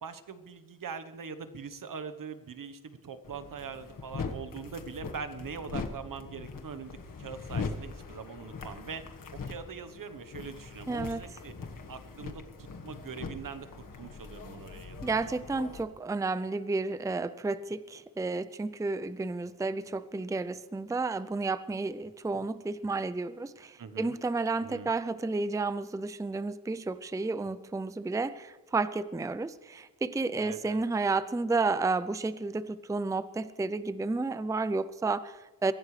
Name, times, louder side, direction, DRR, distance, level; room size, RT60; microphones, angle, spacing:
voice 1, 0.0-9.0 9.3-11.5 11.9-15.0 23.8-24.1 24.6-24.9 30.4-30.8, right 6 dB, 70° right, 11 dB, 1.2 m, -42 dB
sound 1, 3.2-15.8, left 4 dB, 70° left, 1.6 m, -41 dB
voice 2, 10.9-11.2 15.0-35.7, right 3 dB, 10° right, 14 dB, 0.5 m, -31 dB
23.5 x 16.0 x 3.3 m, 1.2 s
wide cardioid pair, 110°, 34 cm